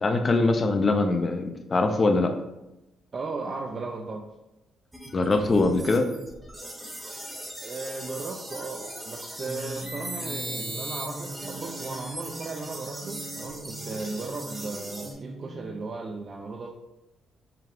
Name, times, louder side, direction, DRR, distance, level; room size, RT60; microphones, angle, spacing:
voice 1, 0.0-2.3 5.1-6.1, left 3 dB, 35° left, 6 dB, 0.5 m, -22 dB
voice 2, 3.1-4.2 7.6-16.7, right 3 dB, 40° right, 1 dB, 0.4 m, -36 dB
sound 1, 4.9-15.1, right 1 dB, 10° right, 0.9 m, -39 dB
sound 2, 9.4-15.8, right 2 dB, 85° right, 0.8 m, -41 dB
5.7 x 2.3 x 3.5 m, 0.94 s
cardioid pair, 90°, 0 cm